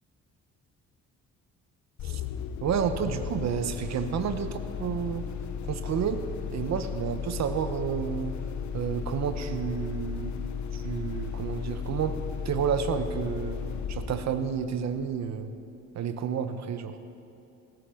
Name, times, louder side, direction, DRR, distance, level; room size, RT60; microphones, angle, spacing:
sound 1, 2.0-15.5, left 7 dB, 70° left, 0.9 m, -35 dB
voice 1, 2.6-5.3 5.7-6.2 6.5-8.3 8.7-10.3 10.7-12.2 12.4-13.6 13.9-15.5 15.9-17.0, right 7 dB, 65° right, 10 dB, 1.1 m, -30 dB
17.5 x 14.0 x 5.0 m, 2.8 s
cardioid pair, 90°, 30 cm